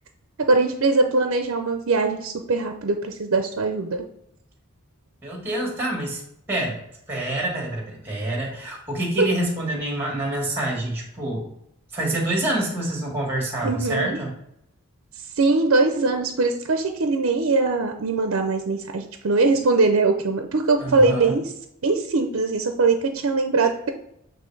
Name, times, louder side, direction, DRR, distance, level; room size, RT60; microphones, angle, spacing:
voice 1, 0.5-4.1 9.2-9.3 13.6-14.2 15.4-21.4 21.8-23.9, right 3 dB, 70° right, 5 dB, 0.5 m, -21 dB
voice 2, 5.2-6.2 6.5-11.5 11.9-14.3 20.8-21.4, right 1 dB, 10° right, -1 dB, 1.5 m, -27 dB
8.2 x 3.0 x 4.6 m, 0.76 s
head